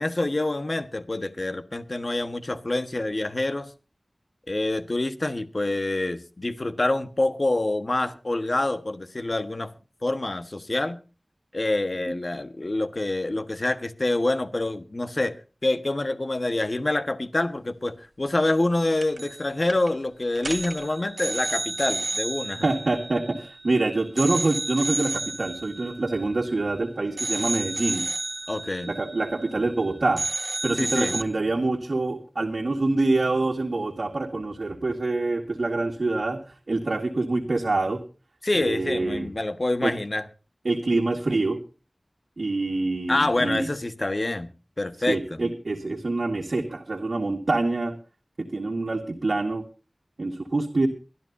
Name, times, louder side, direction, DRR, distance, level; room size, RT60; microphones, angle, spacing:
voice 1, 0.0-3.7 4.5-9.7 10.0-11.0 11.5-15.4 15.6-22.6 28.5-28.9 30.8-31.2 38.4-40.2 43.1-44.5 44.8-45.5, left 2 dB, 55° left, 1.4 m, -26 dB
sound 1, 19.0-19.4 19.7-19.9 20.4-23.7 24.2-26.8 27.2-29.8 30.2-31.2, right 2 dB, 65° right, 1.6 m, -32 dB
voice 2, 22.6-28.1 28.9-30.3 30.6-36.4 36.7-38.0 38.6-39.3 39.8-39.9 40.6-41.6 42.4-43.7 45.1-48.0 48.4-49.7 50.2-50.9, right 2 dB, 85° right, 1.8 m, -26 dB
23.5 x 12.5 x 2.7 m
wide cardioid pair, 60°, 0 cm